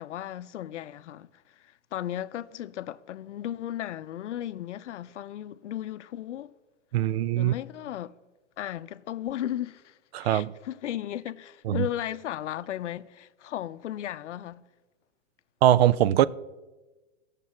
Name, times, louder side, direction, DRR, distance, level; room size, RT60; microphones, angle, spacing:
voice 1, 0.0-6.5 7.4-8.1 8.6-14.6, left 12 dB, 85° left, 0.6 m, -35 dB
voice 2, 6.9-7.5 10.1-10.5 11.7-11.9 15.6-16.3, right 12 dB, 65° right, 0.5 m, -21 dB
17.0 x 6.7 x 4.3 m
hypercardioid pair, 135°, 35 cm